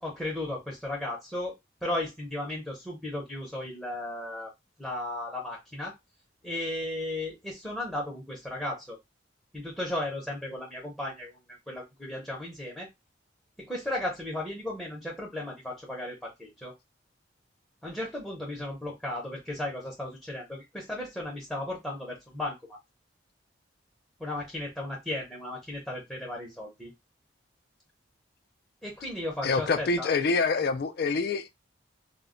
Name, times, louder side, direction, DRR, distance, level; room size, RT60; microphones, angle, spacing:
voice 1, 0.0-1.5 1.8-4.5 4.8-5.9 6.4-9.0 9.5-11.4 11.7-12.9 13.6-16.7 17.8-22.6 24.2-26.9 28.8-30.1, left 1 dB, 5° left, 0.6 m, -35 dB
voice 2, 29.4-31.5, left 4 dB, 50° left, 0.3 m, -26 dB
2.1 x 2.1 x 3.6 m
head